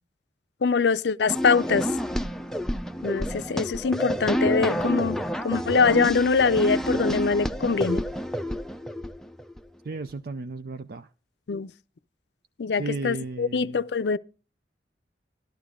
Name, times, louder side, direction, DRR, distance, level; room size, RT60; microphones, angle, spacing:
voice 1, 0.6-1.9 3.0-8.0 11.5-11.7 12.6-14.2, left 5 dB, 75° left, 0.5 m, -23 dB
sound 1, 1.3-9.6, equal, 5° left, 0.5 m, -29 dB
voice 2, 9.8-11.1 12.7-13.8, right 3 dB, 55° right, 0.5 m, -34 dB
13.0 x 12.0 x 3.6 m
head